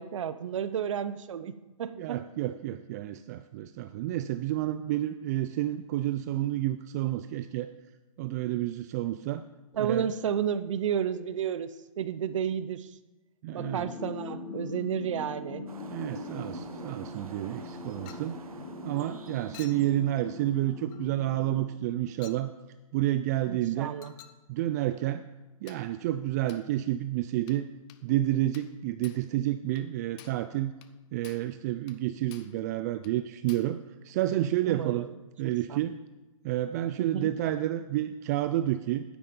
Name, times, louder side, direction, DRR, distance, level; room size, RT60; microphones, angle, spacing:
voice 1, 0.0-1.5 1.8-2.2 9.7-12.9 13.5-15.6 23.5-24.1 34.6-35.1 35.4-35.8 37.0-37.3, right 8 dB, 60° right, 13 dB, 0.7 m, -32 dB
voice 2, 2.0-7.7 8.2-9.4 9.8-10.1 13.4-13.8 15.1-15.2 15.9-18.4 18.8-22.5 22.9-23.9 24.5-25.2 25.6-27.7 28.0-30.7 31.1-33.8 34.0-35.1 35.4-36.0 36.4-39.0, right 14 dB, 30° right, 11 dB, 0.4 m, -30 dB
sound 1, 13.6-22.3, left 3 dB, 45° left, 3.7 m, -42 dB
sound 2, 15.7-20.8, right 5 dB, 85° right, 1.1 m, -49 dB
Chink clink, 18.1-18.4 19.5-19.9 20.9-21.1 22.2-22.5 24.0-24.4 25.7-25.9 26.5-26.7 27.5-27.6 27.9-28.1 28.5-28.8 29.0-29.3 29.8-29.9 30.2-30.5 30.8-30.9 31.2-31.5 31.9-32.0 32.3-32.6 33.0-33.2 33.5-33.8, left 13 dB, 25° left, 0.6 m, -52 dB
11.0 x 9.8 x 5.2 m, 1.1 s
hypercardioid pair, 140°, 18 cm